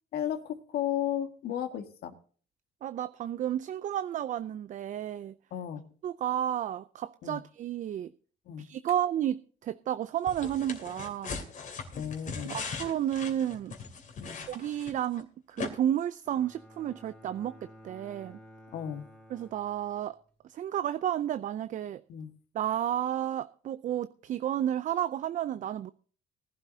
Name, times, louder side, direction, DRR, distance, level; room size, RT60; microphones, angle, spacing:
voice 1, 0.1-2.1 5.5-5.9 7.2-7.4 8.5-8.7 11.9-12.6 14.2-14.4 18.7-19.0 22.1-22.3, left 10 dB, 70° left, 1.8 m, -34 dB
voice 2, 2.8-5.3 6.0-8.1 8.6-11.4 12.5-13.8 14.5-18.4 19.3-20.2 20.4-22.0 22.5-25.9, right 11 dB, 50° right, 0.5 m, -32 dB
sound 1, 10.3-15.2 15.6-15.7, left 5 dB, 50° left, 2.8 m, -39 dB
Bowed string instrument, 16.2-20.3, equal, 5° left, 4.7 m, -53 dB
18.5 x 12.0 x 2.8 m
cardioid pair, 110°, 17 cm